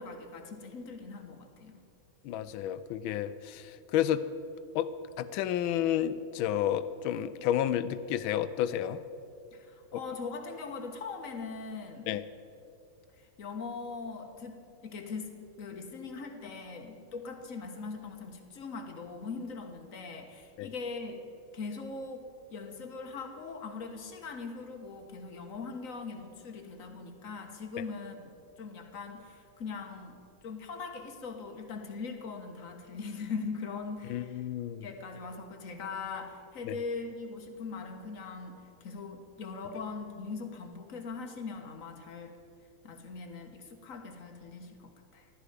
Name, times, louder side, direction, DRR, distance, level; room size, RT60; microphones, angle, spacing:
voice 1, 0.0-1.8 9.5-12.1 13.1-21.2 21.5-34.5 34.8-42.4 42.8-45.3, left 4 dB, 45° left, 5 dB, 1.5 m, -41 dB
voice 2, 2.2-4.2 4.7-4.9 5.2-9.0 9.9-10.0 12.1-12.2 20.6-20.7 34.1-34.8 36.7-36.8, left 11 dB, 85° left, 13 dB, 1.4 m, -31 dB
15.0 x 12.5 x 5.0 m, 2.6 s
omnidirectional pair, 2.1 m